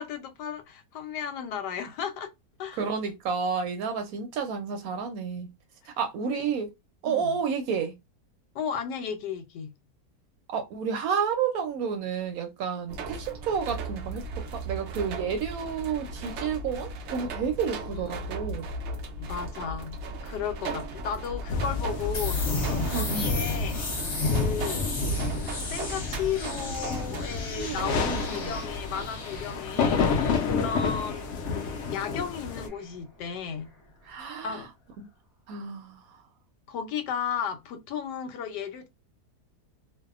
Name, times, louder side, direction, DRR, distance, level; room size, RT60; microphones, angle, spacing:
voice 1, 0.0-2.3 2.6-2.9 6.2-6.5 7.0-7.4 8.5-9.7 17.9-18.0 19.2-20.0 20.2-23.8 24.2-24.9 25.7-31.3 31.9-33.7 34.4-34.7 36.7-38.9, left 7 dB, 90° left, 1.2 m, -34 dB
voice 2, 2.8-5.5 6.0-6.7 7.0-7.9 10.5-14.2 14.5-18.7 22.9-23.3 27.6-28.5 30.3-30.7 34.1-34.6 35.5-36.0, right 6 dB, 70° right, 0.9 m, -31 dB
sound 1, 12.9-29.0, right 1 dB, 85° right, 0.6 m, -36 dB
sound 2, 21.5-32.7, left 4 dB, 65° left, 0.7 m, -30 dB
sound 3, 22.1-33.8, left 2 dB, 40° left, 1.1 m, -39 dB
2.6 x 2.2 x 2.3 m
omnidirectional pair, 1.8 m